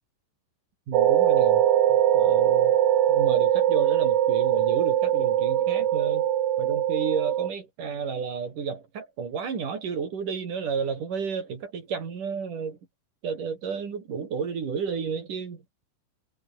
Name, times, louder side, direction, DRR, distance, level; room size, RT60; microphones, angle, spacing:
voice 1, 0.9-1.6 1.9-2.8 3.1-6.3 6.6-12.8 13.2-15.6, right 6 dB, 45° right, 4.7 m, -32 dB
sound 1, 0.9-7.5, right 11 dB, 65° right, 4.2 m, -21 dB
omnidirectional pair, 5.8 m